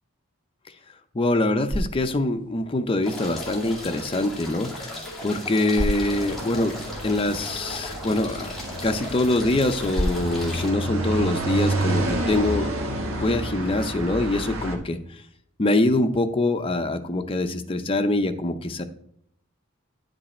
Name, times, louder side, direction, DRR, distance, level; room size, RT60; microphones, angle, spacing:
voice 1, 1.1-4.9 5.2-6.8 7.0-8.5 8.8-12.7 13.2-15.2 15.6-18.8, left 2 dB, 25° left, 7 dB, 0.5 m, -24 dB
sound 1, 1.3-12.4, equal, 25° right, 0.6 m, -36 dB
sound 2, 3.0-10.7, left 1 dB, ahead, 2.2 m, -37 dB
sound 3, 6.0-14.8, right 1 dB, 80° right, 1.2 m, -30 dB
9.7 x 5.3 x 4.2 m, 0.69 s
head